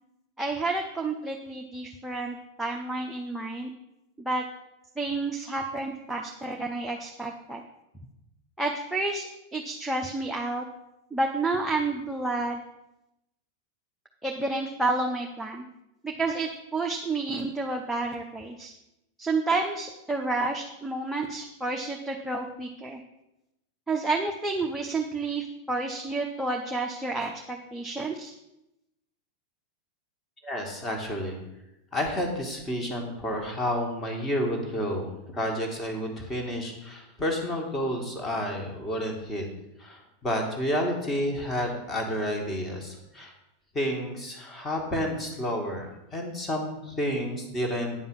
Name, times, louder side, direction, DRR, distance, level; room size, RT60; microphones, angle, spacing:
voice 1, 0.4-3.7 4.2-4.4 5.0-7.6 8.6-10.7 11.1-12.6 14.2-15.7 16.0-18.7 19.2-23.0 23.9-28.3, right 3 dB, 5° right, 0 dB, 0.8 m, -30 dB
voice 2, 30.4-31.4 31.9-39.5 39.8-43.3 43.7-48.0, equal, 15° left, 1 dB, 2.1 m, -30 dB
9.4 x 5.4 x 7.2 m, 0.89 s
figure-of-eight pair, 90°, 0 cm